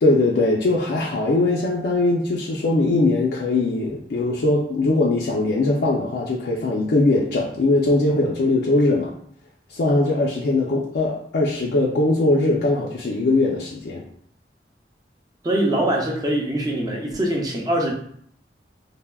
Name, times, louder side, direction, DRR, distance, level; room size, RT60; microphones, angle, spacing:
voice 1, 0.0-9.1 9.7-14.0, left 2 dB, 65° left, -2 dB, 0.4 m, -20 dB
voice 2, 15.4-17.9, right 1 dB, 20° right, -1 dB, 0.5 m, -23 dB
3.3 x 2.0 x 2.2 m, 0.63 s
head